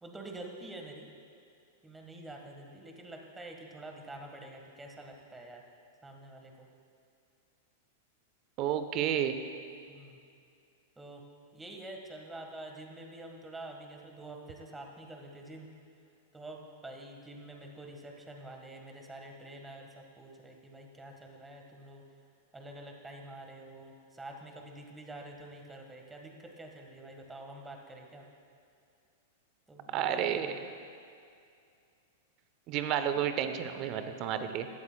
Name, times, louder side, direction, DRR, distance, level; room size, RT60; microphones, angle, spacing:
voice 1, 0.0-1.1 1.8-5.6 6.0-6.7 9.9-10.2 11.0-11.2 11.5-15.7 16.3-22.0 22.5-28.3 29.7-30.6, right 1 dB, 10° right, 2 dB, 1.6 m, -47 dB
voice 2, 8.6-9.4 29.9-30.5 32.7-34.7, right 9 dB, 45° right, 9 dB, 0.8 m, -31 dB
17.0 x 12.5 x 2.3 m, 2.4 s
hypercardioid pair, 100°, 0 cm